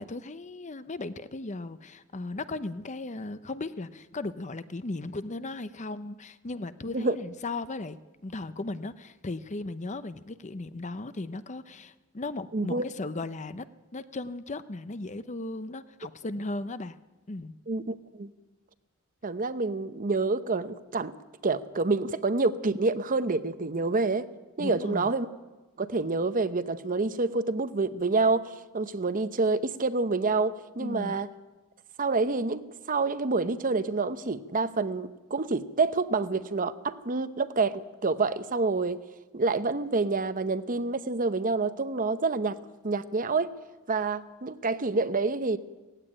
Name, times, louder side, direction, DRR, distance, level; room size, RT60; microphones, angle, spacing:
voice 1, 0.0-8.0 8.2-13.7 13.9-17.0 17.3-17.5 24.6-25.1 30.8-31.2, left 2 dB, 35° left, 13 dB, 0.7 m, -36 dB
voice 2, 12.5-12.8 17.7-18.3 19.2-21.1 21.4-24.3 24.6-25.3 25.8-31.3 32.0-39.0 39.3-42.6 42.8-43.6 43.9-45.6, right 3 dB, 40° right, 12 dB, 0.8 m, -27 dB
17.5 x 16.0 x 10.0 m, 1.2 s
head